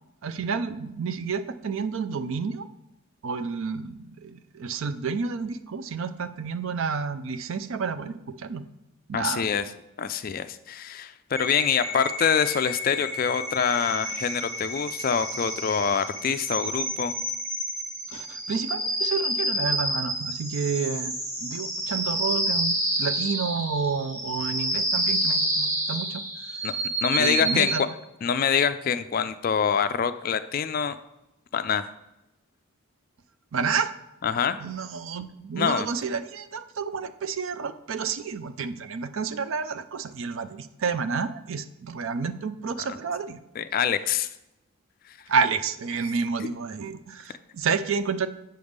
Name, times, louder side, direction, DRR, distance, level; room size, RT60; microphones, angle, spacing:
voice 1, 0.2-2.7 3.2-8.6 9.1-9.5 18.1-21.1 21.4-26.2 26.5-26.6 27.2-27.9 33.5-33.9 34.6-43.4 45.3-48.3, right 5 dB, 65° right, 12 dB, 0.4 m, -30 dB
voice 2, 9.1-9.7 10.0-17.1 26.6-26.7 27.0-27.9 28.2-30.9 31.5-31.9 34.2-34.6 35.6-35.9 43.6-44.3 45.1-45.2 46.4-46.5, left 7 dB, 40° left, 12 dB, 0.3 m, -25 dB
sound 1, 11.4-27.8, right 1 dB, 35° right, 1.3 m, -29 dB
7.8 x 3.5 x 6.5 m, 0.91 s
head